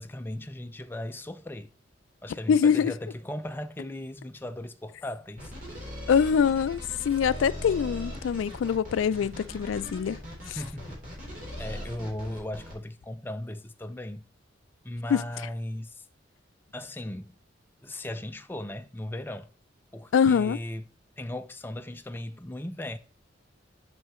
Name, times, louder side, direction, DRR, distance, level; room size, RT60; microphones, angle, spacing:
voice 1, 0.0-1.7 2.2-5.5 10.6-11.0 11.6-14.2 14.8-16.0 16.7-17.4 17.8-19.5 19.9-20.9 21.2-23.0, left 1 dB, 10° left, 0.4 m, -37 dB
voice 2, 2.5-2.9 6.1-6.8 7.0-10.2 10.5-10.6 15.1-15.2 20.1-20.6, left 7 dB, 85° left, 0.3 m, -24 dB
sound 1, 5.4-12.7, equal, 45° right, 3.6 m, -39 dB
8.0 x 5.6 x 3.0 m
head